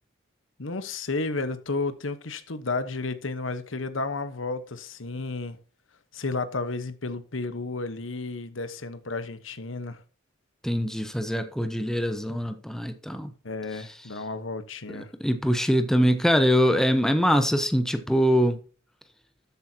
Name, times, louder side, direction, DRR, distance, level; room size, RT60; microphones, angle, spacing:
voice 1, 0.6-5.6 6.1-10.0 13.4-15.1, left 3 dB, 80° left, 1.2 m, -32 dB
voice 2, 10.6-13.3 14.9-18.6, equal, 5° left, 1.0 m, -23 dB
13.0 x 8.4 x 2.9 m
head